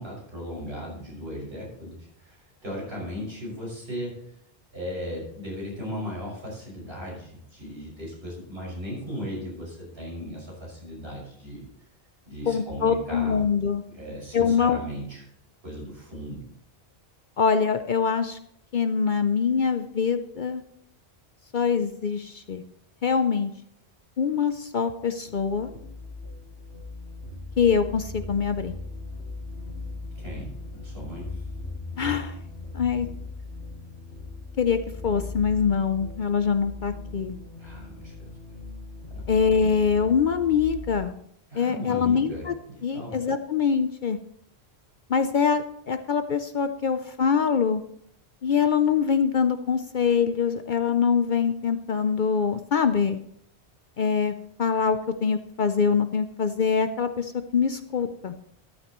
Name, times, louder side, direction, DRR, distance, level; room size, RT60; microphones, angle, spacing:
voice 1, 0.0-4.2 4.7-11.7 12.2-13.4 13.9-15.2 15.6-16.4 30.2-31.4 37.6-38.3 39.1-39.3 41.5-43.2, equal, 65° right, -4 dB, 6.1 m, -37 dB
voice 2, 12.5-13.8 14.3-14.8 17.4-18.4 18.7-20.6 21.5-22.6 23.0-23.5 24.2-25.7 27.6-28.7 32.0-32.4 32.7-33.1 34.6-37.4 39.3-41.1 41.5-42.5 42.8-44.2 45.1-47.8 48.4-53.2 54.0-54.3 54.6-58.3, left 6 dB, 55° left, 9 dB, 0.7 m, -24 dB
sound 1, 25.3-41.0, left 3 dB, 75° left, 4.1 m, -39 dB
13.0 x 12.0 x 3.0 m, 0.71 s
omnidirectional pair, 1.1 m